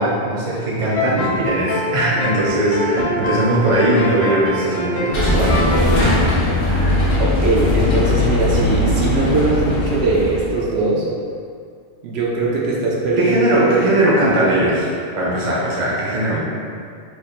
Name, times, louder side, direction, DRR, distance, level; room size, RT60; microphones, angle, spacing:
voice 1, 0.0-5.7 6.0-6.3 6.7-7.0 13.2-14.9 15.2-16.4, right 1 dB, 35° right, -6 dB, 0.7 m, -19 dB
sound 1, 0.9-7.6, left 2 dB, 75° left, 1.1 m, -25 dB
sound 2, 5.1-10.6, left 1 dB, 55° left, 0.8 m, -19 dB
voice 2, 7.2-11.1 12.0-13.8 16.3-16.4, right 3 dB, 70° right, -4 dB, 0.8 m, -20 dB
3.2 x 2.4 x 4.0 m, 2.3 s
omnidirectional pair, 1.1 m